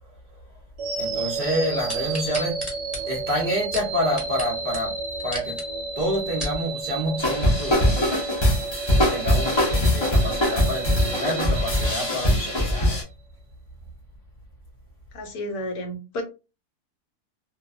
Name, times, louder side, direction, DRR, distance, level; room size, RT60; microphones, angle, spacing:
sound 1, 0.8-12.9, right 4 dB, 70° right, 0.9 m, -32 dB
voice 1, 1.0-2.6 3.0-5.0 5.2-5.6 5.9-8.1 9.0-12.9, equal, 50° right, 0.6 m, -28 dB
sound 2, 1.9-4.5 4.7-4.8 5.2-5.6 6.1-6.6 7.2-7.3, equal, ahead, 1.0 m, -34 dB
sound 3, 7.2-13.0, left 1 dB, 35° left, 0.4 m, -22 dB
voice 2, 15.1-16.2, left 1 dB, 70° left, 1.1 m, -31 dB
2.6 x 2.1 x 2.4 m
omnidirectional pair, 1.7 m